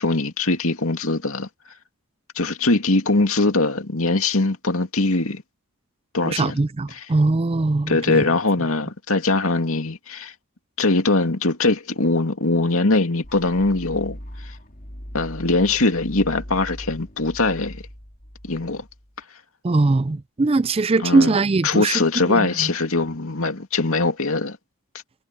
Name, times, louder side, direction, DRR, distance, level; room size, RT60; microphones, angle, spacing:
voice 1, 0.0-1.5 2.4-5.4 6.1-6.6 6.9-7.1 7.9-10.3 10.8-14.2 14.4-14.5 15.1-17.8 18.4-18.8 21.0-21.4 21.6-24.6, left 3 dB, 70° left, 2.4 m, -21 dB
voice 2, 6.2-8.2 19.6-22.0 22.3-22.7, right 3 dB, 25° right, 0.4 m, -21 dB
sound 1, 13.2-19.2, equal, 40° left, 3.3 m, -39 dB
head